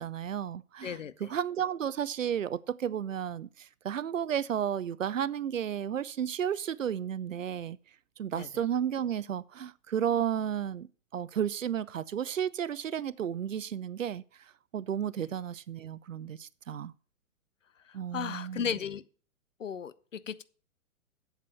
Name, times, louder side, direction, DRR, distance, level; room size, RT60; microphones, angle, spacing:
voice 1, 0.0-7.8 8.2-14.2 14.7-16.9 17.9-18.7, right 9 dB, 60° right, 0.6 m, -33 dB
voice 2, 0.8-1.3 8.3-8.5 17.9-19.0 19.6-20.4, left 7 dB, 60° left, 0.8 m, -36 dB
8.3 x 7.4 x 6.8 m
figure-of-eight pair, 120°, 44 cm